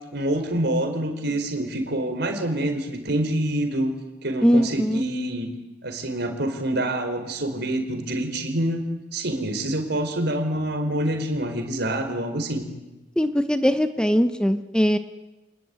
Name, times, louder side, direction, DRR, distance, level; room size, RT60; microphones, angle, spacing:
voice 1, 0.1-3.9 4.2-5.5 5.8-8.8 9.1-12.6, right 1 dB, 60° right, 6 dB, 4.5 m, -26 dB
voice 2, 4.4-5.0 13.2-15.0, equal, 5° left, 9 dB, 0.9 m, -20 dB
28.5 x 20.5 x 9.5 m, 1.0 s
head